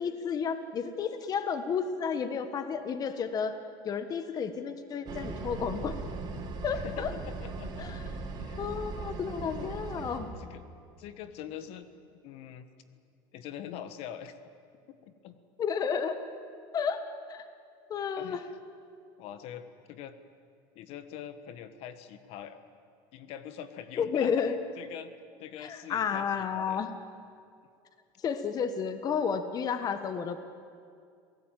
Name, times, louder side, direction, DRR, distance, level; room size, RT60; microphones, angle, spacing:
voice 1, 0.0-3.6 3.8-6.0 6.6-7.1 7.8-8.0 8.6-10.3 15.6-16.2 16.7-17.0 17.3-17.5 17.9-18.4 24.0-24.6 25.6-26.9 28.2-30.4, left 6 dB, 35° left, 10 dB, 1.3 m, -31 dB
sound 1, 5.0-10.2, right 3 dB, 35° right, 4.3 m, -38 dB
voice 2, 6.7-7.9 8.4-8.6 9.4-10.0 10.4-10.6 11.0-11.9 12.2-12.6 13.3-14.4 14.9-15.4 18.2-18.5 19.2-20.1 20.7-22.6 23.1-25.1 25.4-26.8, left 9 dB, 60° left, 11 dB, 1.5 m, -44 dB
27.5 x 18.0 x 9.1 m, 2.3 s
supercardioid pair, 130°, 11 cm